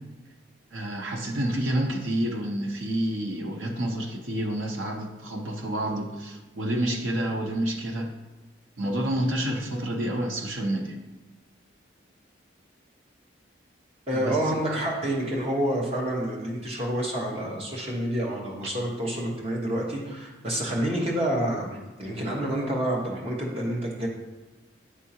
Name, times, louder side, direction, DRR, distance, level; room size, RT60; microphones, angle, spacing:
voice 1, 0.7-8.1 8.8-11.0 14.1-14.4 14.7-14.9, right 1 dB, 80° right, 3 dB, 0.8 m, -29 dB
voice 2, 14.1-24.1, right 1 dB, 30° right, -3 dB, 1.1 m, -28 dB
9.6 x 3.6 x 2.8 m, 1.1 s
head